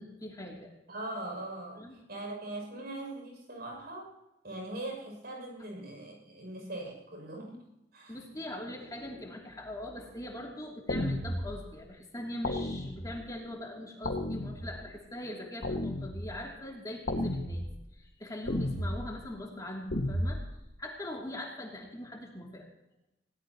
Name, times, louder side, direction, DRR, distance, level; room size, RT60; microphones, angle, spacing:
voice 1, 0.0-0.7 1.8-2.0 8.1-17.7 18.0-20.4 20.8-22.7, left 1 dB, 20° left, -2 dB, 2.9 m, -41 dB
voice 2, 0.9-4.1 4.4-8.2, right 2 dB, 60° right, 1 dB, 6.8 m, -41 dB
sound 1, 10.9-11.6 12.4-13.3 14.0-14.9 15.6-16.4 17.1-17.8 18.5-19.1 19.9-20.5, left 1 dB, 75° left, 1.8 m, -33 dB
20.5 x 18.0 x 3.0 m, 0.94 s
head